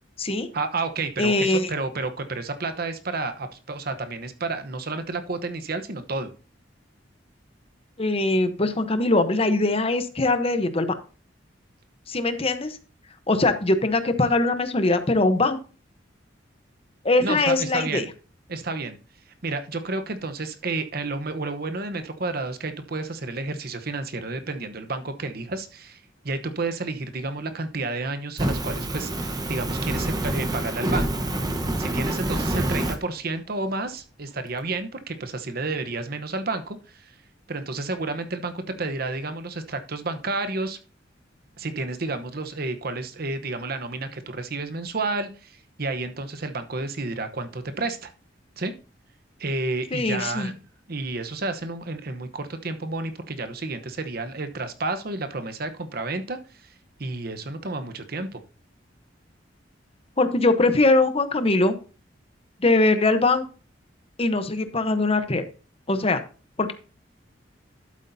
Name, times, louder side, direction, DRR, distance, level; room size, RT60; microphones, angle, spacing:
voice 1, 0.5-6.3 17.2-18.1 18.5-19.0 19.4-31.1 31.8-37.2 37.5-40.8 41.6-48.1 48.6-48.7 49.4-50.6 50.9-58.4, right 3 dB, 55° right, 9 dB, 1.0 m, -31 dB
voice 2, 1.2-1.7 8.0-11.0 12.1-12.8 13.3-15.6 17.0-18.1 49.9-50.5 60.2-61.7 62.6-63.4 64.2-65.4 65.9-66.2 66.6-66.7, left 2 dB, 30° left, 9 dB, 0.9 m, -21 dB
Fire, 28.4-33.0, right 1 dB, 20° right, 1.0 m, -27 dB
12.0 x 8.3 x 2.7 m, 0.35 s
head